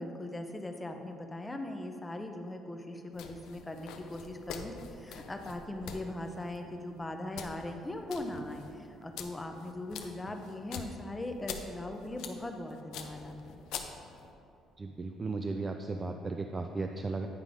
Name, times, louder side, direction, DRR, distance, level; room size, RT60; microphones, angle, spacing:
voice 1, 0.0-13.6, left 1 dB, 15° left, 5 dB, 0.7 m, -40 dB
sound 1, 3.1-14.3, left 6 dB, 80° left, 0.5 m, -46 dB
voice 2, 14.8-17.3, right 3 dB, 30° right, 4 dB, 0.4 m, -35 dB
9.3 x 3.7 x 5.0 m, 2.7 s
cardioid pair, 95°, 0 cm